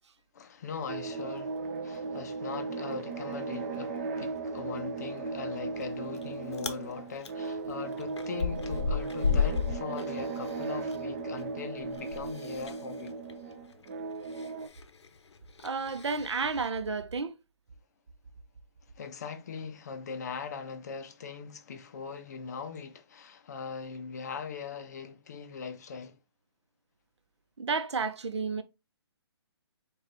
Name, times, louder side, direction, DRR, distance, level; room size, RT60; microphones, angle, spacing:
voice 1, 0.3-13.2 18.9-26.2, left 5 dB, 40° left, 0.4 m, -40 dB
sound 1, 0.9-14.7, right 4 dB, 25° right, 0.4 m, -37 dB
Chewing mastication, 5.8-6.2 6.5-6.8 7.2-11.0 11.3-16.7, left 5 dB, 80° left, 0.6 m, -34 dB
voice 2, 15.6-17.4 27.6-28.6, right 4 dB, 80° right, 0.6 m, -31 dB
4.7 x 2.3 x 3.0 m
hypercardioid pair, 155°, 14 cm